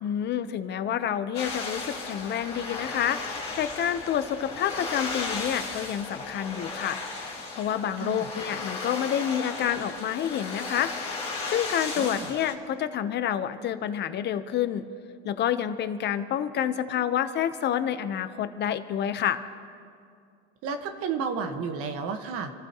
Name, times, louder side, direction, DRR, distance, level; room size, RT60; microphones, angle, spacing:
voice 1, 0.0-3.2 3.6-7.0 7.5-10.9 11.5-14.8 15.2-19.4, left 9 dB, 35° left, 11 dB, 0.9 m, -28 dB
sound 1, 1.3-12.5, left 3 dB, 20° left, 2.7 m, -35 dB
voice 2, 12.0-12.3 20.6-22.5, right 5 dB, 50° right, 6 dB, 1.4 m, -32 dB
27.5 x 14.0 x 3.0 m, 2.3 s
supercardioid pair, 130°, 29 cm